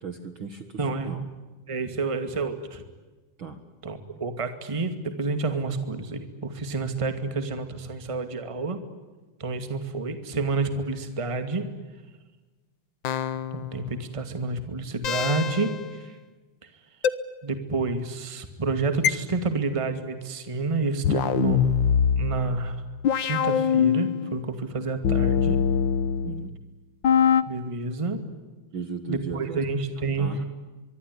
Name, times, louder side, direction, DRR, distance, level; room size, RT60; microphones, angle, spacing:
voice 1, 0.0-1.3 3.4-3.6 26.2-26.6 28.7-29.8 30.2-30.4, right 6 dB, 45° right, 8 dB, 2.1 m, -36 dB
voice 2, 0.8-1.1 1.7-2.8 3.8-8.8 9.4-11.7 13.5-15.7 16.0-16.1 17.4-21.6 22.2-22.8 23.3-25.6 27.5-28.2 29.1-30.3, right 3 dB, 10° right, 9 dB, 1.9 m, -29 dB
sound 1, 13.0-13.8 15.0-15.8 17.0-17.1 19.0-19.1 21.0-24.4 25.0-26.5 27.0-27.4, left 7 dB, 75° left, 1.0 m, -23 dB
24.5 x 24.0 x 9.6 m, 1.2 s
omnidirectional pair, 3.6 m